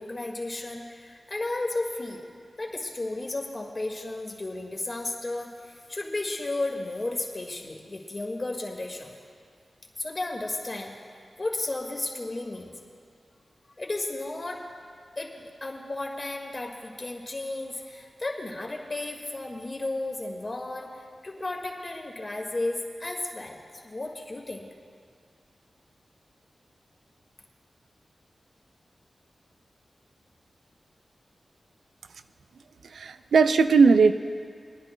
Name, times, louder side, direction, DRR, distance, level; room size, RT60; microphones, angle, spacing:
voice 1, 0.0-2.2 2.6-9.1 10.0-10.9 11.4-12.7 13.8-14.7 15.2-23.6 23.8-24.7, left 2 dB, 40° left, 1 dB, 1.8 m, -33 dB
voice 2, 32.9-34.1, right 5 dB, 85° right, 10 dB, 0.4 m, -18 dB
24.0 x 10.5 x 2.2 m, 2.2 s
cardioid pair, 40°, 0 cm